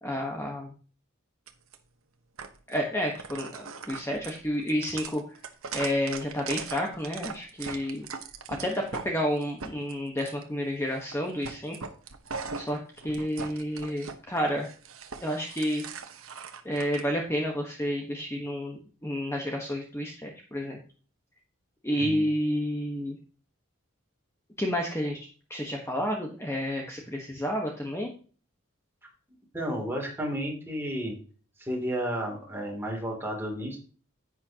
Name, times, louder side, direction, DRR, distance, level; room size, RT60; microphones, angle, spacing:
voice 1, 0.0-0.7 2.7-5.4 5.7-8.1 8.5-11.8 12.6-12.8 13.0-14.7 15.2-15.8 16.6-20.8 21.8-23.2 24.6-28.1, equal, 15° left, 0 dB, 1.3 m, -30 dB
sound 1, 1.5-1.8 2.4-2.8 3.1-9.1 9.4-10.4 10.9-11.2 11.4-14.1 14.5-17.0, right 5 dB, 80° right, 1.1 m, -40 dB
voice 2, 29.5-31.2 31.6-33.8, equal, 10° right, 0 dB, 2.9 m, -32 dB
10.5 x 8.7 x 2.9 m, 0.38 s
head